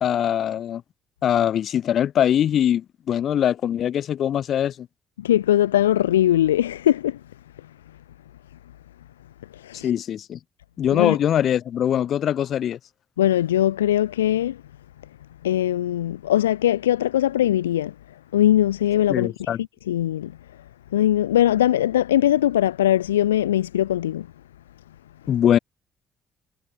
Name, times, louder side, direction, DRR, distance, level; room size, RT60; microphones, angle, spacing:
voice 1, 0.0-0.8 1.2-4.9 9.8-10.4 10.8-12.8 19.1-19.6 25.3-25.6, left 10 dB, 55° left, 1.6 m, -22 dB
voice 2, 5.2-7.2 9.5-9.9 10.9-11.2 13.2-14.6 15.4-17.9 18.3-19.5 19.9-20.3 20.9-24.3, left 12 dB, 85° left, 2.5 m, -20 dB
figure-of-eight pair, 45°, 0 cm